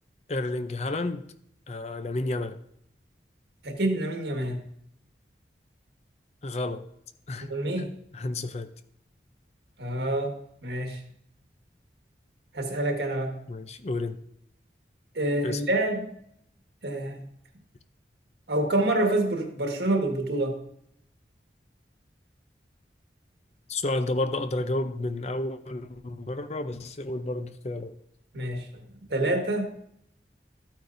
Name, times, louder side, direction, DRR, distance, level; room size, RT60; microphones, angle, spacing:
voice 1, 0.3-1.2 1.7-2.6 6.4-6.9 7.3-7.5 8.1-8.7 13.5-14.2 15.4-15.6 23.7-28.0, left 2 dB, 40° left, 0.5 m, -31 dB
voice 2, 3.6-4.6 7.5-7.9 9.8-10.4 10.6-11.0 12.5-13.4 15.1-16.1 16.8-17.2 18.5-20.6 28.3-28.8 29.1-29.7, right 1 dB, 75° right, 1.6 m, -27 dB
13.5 x 8.9 x 2.6 m
head